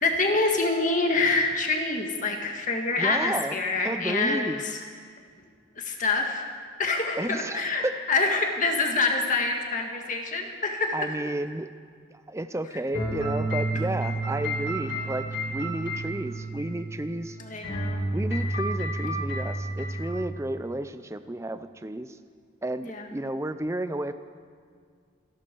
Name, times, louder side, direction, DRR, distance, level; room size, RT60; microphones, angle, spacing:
voice 1, 0.0-4.8 5.8-6.4 6.8-11.0 17.4-18.1 22.9-23.0, left 3 dB, 40° left, 2 dB, 1.8 m, -26 dB
voice 2, 3.0-3.6 3.8-4.6 7.2-8.0 10.9-11.7 12.3-17.4 18.1-22.2 22.6-24.1, right 1 dB, 15° right, 11 dB, 0.5 m, -32 dB
sound 1, 12.9-17.3 17.6-20.3, right 1 dB, 55° left, 4.3 m, -30 dB
27.0 x 11.0 x 4.6 m, 2.1 s
head